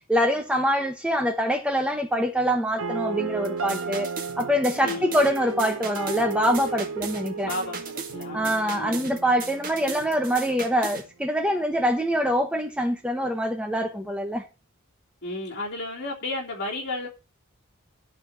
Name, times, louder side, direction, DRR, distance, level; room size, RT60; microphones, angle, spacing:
voice 1, 0.1-4.1 4.4-7.5 8.3-14.4, equal, 5° right, 0.9 m, -24 dB
sound 1, 2.8-10.8, right 4 dB, 70° right, 0.8 m, -34 dB
sound 2, 3.4-11.1, right 5 dB, 40° right, 1.8 m, -37 dB
voice 2, 4.8-5.3 7.4-9.1 15.2-17.1, left 2 dB, 50° left, 3.5 m, -33 dB
12.0 x 4.5 x 6.8 m
head